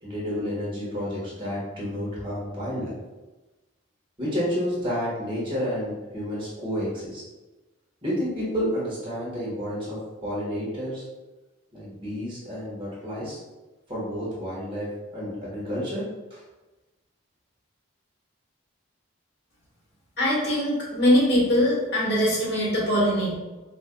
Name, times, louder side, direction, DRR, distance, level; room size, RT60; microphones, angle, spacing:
voice 1, 0.0-3.0 4.2-7.2 8.0-11.0 11.7-13.4 13.9-16.0 16.3-16.4, equal, 25° right, -7 dB, 1.3 m, -30 dB
voice 2, 20.2-23.3, equal, 55° left, -5 dB, 1.4 m, -22 dB
5.1 x 2.6 x 2.2 m, 1.1 s
head